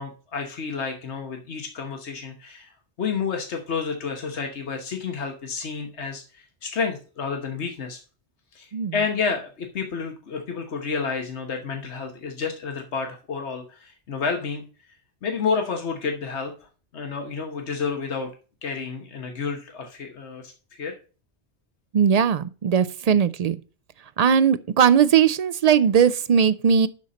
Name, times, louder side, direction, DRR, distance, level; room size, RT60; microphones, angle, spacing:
voice 1, 0.0-2.7 3.0-8.0 8.5-14.6 15.2-16.5 16.9-18.3 18.6-20.9, left 5 dB, 90° left, 1.4 m, -30 dB
voice 2, 21.9-23.6 24.2-26.9, right 7 dB, 55° right, 0.4 m, -19 dB
11.5 x 4.2 x 5.1 m
omnidirectional pair, 1.1 m